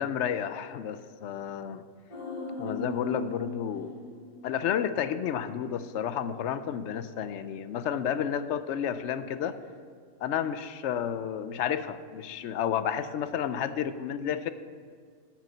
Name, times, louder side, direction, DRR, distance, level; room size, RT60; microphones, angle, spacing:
voice 1, 0.0-1.8 2.6-4.0 4.4-9.6 10.2-14.5, left 9 dB, 70° left, 12 dB, 0.8 m, -31 dB
sound 1, 2.1-5.4 5.7-5.8, left 1 dB, 30° left, 1.3 m, -40 dB
8.3 x 6.6 x 7.3 m, 2.1 s
omnidirectional pair, 1.3 m